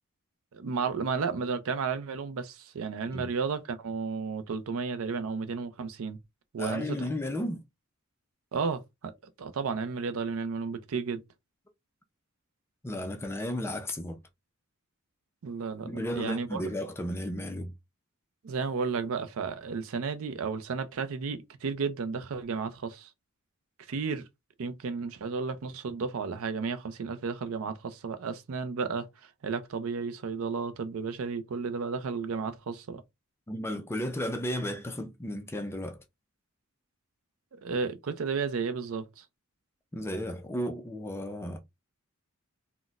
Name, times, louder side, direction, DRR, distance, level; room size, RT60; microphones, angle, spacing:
voice 1, 0.5-6.2 6.5-7.1 8.5-9.1 9.4-11.2 15.4-16.6 18.4-23.1 23.9-24.2 24.6-33.0 37.5-39.2, right 5 dB, 70° right, 0.5 m, -33 dB
voice 2, 6.6-7.6 12.8-14.2 15.8-17.7 33.5-36.0 39.9-41.6, left 1 dB, 10° left, 0.4 m, -34 dB
4.0 x 2.1 x 2.3 m
head